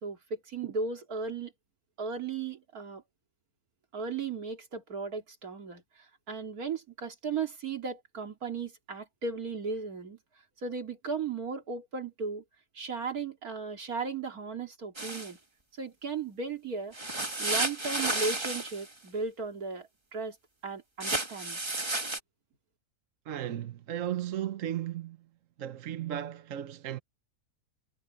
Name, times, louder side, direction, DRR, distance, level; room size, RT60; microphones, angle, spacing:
voice 1, 0.0-1.5 2.0-3.0 3.9-5.8 6.3-10.2 10.6-12.4 12.7-15.4 15.8-16.9 17.4-20.4 20.6-21.6, right 4 dB, 85° right, 2.9 m, -36 dB
sound 1, 15.0-15.3 16.9-18.9 21.0-22.2, right 2 dB, 20° right, 1.5 m, -32 dB
voice 2, 23.3-25.2 25.6-27.0, right 11 dB, 65° right, 1.2 m, -35 dB
omnidirectional pair, 1.5 m